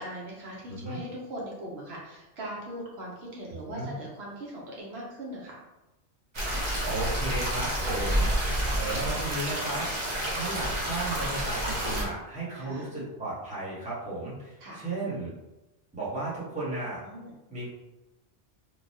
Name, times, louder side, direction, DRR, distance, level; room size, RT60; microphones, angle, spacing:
voice 1, 0.0-5.6 8.7-8.9 12.5-12.9 14.6-14.8 17.0-17.3, right 1 dB, 65° right, -4 dB, 0.9 m, -40 dB
voice 2, 0.7-1.0 3.5-3.9 6.8-15.3 15.9-17.0 17.5-17.7, right 2 dB, 5° right, -8 dB, 0.8 m, -35 dB
sound 1, 6.3-12.0, equal, 35° right, 0.5 m, -29 dB
3.1 x 2.2 x 2.6 m, 1.0 s
omnidirectional pair, 1.2 m